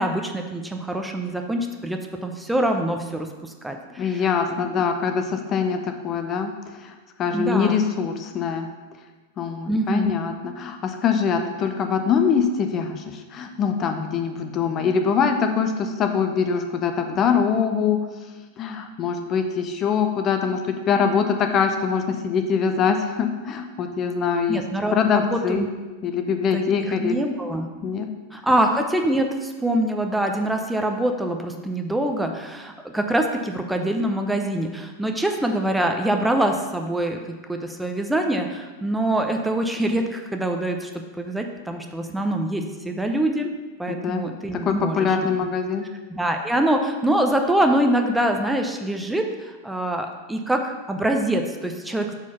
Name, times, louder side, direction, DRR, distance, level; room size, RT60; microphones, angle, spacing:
voice 1, 0.0-4.2 4.5-4.8 7.3-7.8 9.7-10.2 24.5-25.7 26.5-27.7 28.3-43.5 43.8-45.2 46.1-52.1, right 1 dB, 5° right, 4 dB, 0.6 m, -24 dB
voice 2, 4.0-6.9 7.2-8.7 9.4-18.0 18.6-24.6 24.9-25.7 26.0-27.2 27.8-28.4 43.9-44.2 44.6-45.8, left 6 dB, 35° left, 6 dB, 0.6 m, -23 dB
4.5 x 4.3 x 5.7 m, 1.3 s
hypercardioid pair, 95°, 0 cm